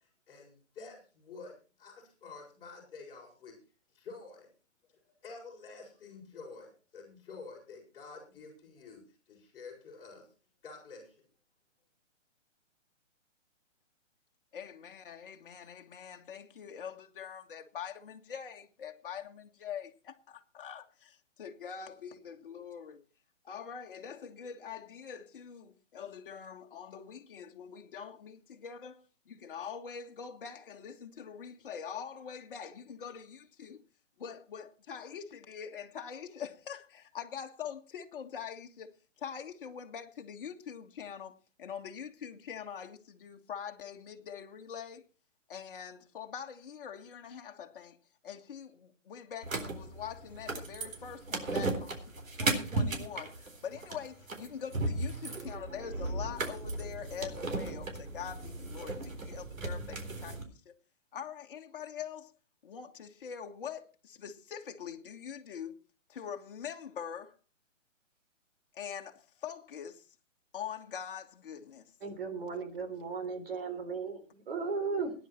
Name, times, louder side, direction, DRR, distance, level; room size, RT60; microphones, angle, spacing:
voice 1, 0.0-3.6 3.9-4.5 4.9-10.3 10.6-11.2, left 4 dB, 10° left, 6.1 m, -49 dB
voice 2, 14.5-23.1 23.4-33.8 34.2-45.1 45.5-48.0 48.2-51.9 52.4-60.8 61.1-62.3 62.6-65.8 66.1-67.4 68.7-70.1 70.5-71.9, left 7 dB, 45° left, 1.7 m, -44 dB
sound 1, 49.4-60.4, right 2 dB, 90° right, 4.0 m, -36 dB
voice 3, 72.0-75.1, right 4 dB, 50° right, 3.7 m, -36 dB
18.0 x 10.5 x 4.4 m
hypercardioid pair, 165°, 38 cm